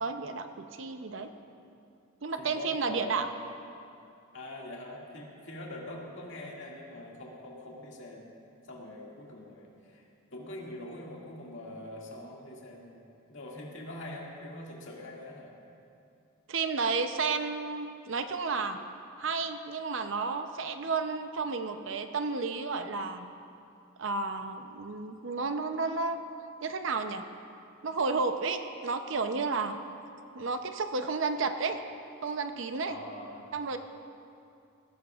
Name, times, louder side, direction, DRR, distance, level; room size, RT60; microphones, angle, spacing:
voice 1, 0.0-1.3 2.2-3.3 16.5-18.8 19.2-23.3 24.0-26.2 26.6-27.3 27.8-29.8 30.3-31.8 32.2-33.0 33.5-33.8, right 4 dB, 60° right, 8 dB, 0.6 m, -32 dB
voice 2, 2.4-3.3 4.3-8.3 8.7-10.0 10.3-15.5 32.9-33.5, left 1 dB, 60° left, -3 dB, 2.1 m, -43 dB
18.0 x 15.5 x 2.4 m, 2.6 s
head